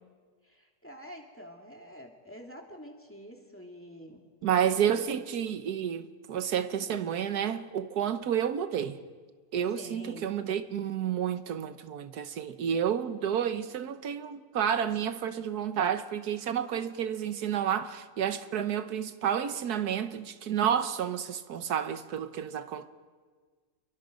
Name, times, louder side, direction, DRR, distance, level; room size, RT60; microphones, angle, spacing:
voice 1, 0.4-4.2 9.7-10.3, equal, 10° left, 2.7 m, -47 dB
voice 2, 4.4-9.0 9.5-22.9, right 9 dB, 85° right, 1.5 m, -30 dB
29.0 x 22.5 x 5.3 m
omnidirectional pair, 1.6 m